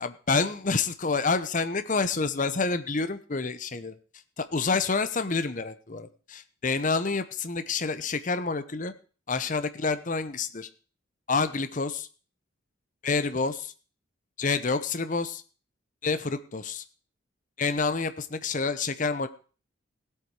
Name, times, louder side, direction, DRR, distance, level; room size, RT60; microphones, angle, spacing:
voice 1, 0.0-3.9 4.4-8.9 9.3-10.7 11.3-12.1 13.0-13.7 14.4-15.4 16.0-16.8 17.6-19.3, left 4 dB, 40° left, 11 dB, 0.8 m, -28 dB
17.0 x 8.3 x 4.8 m, 0.39 s
head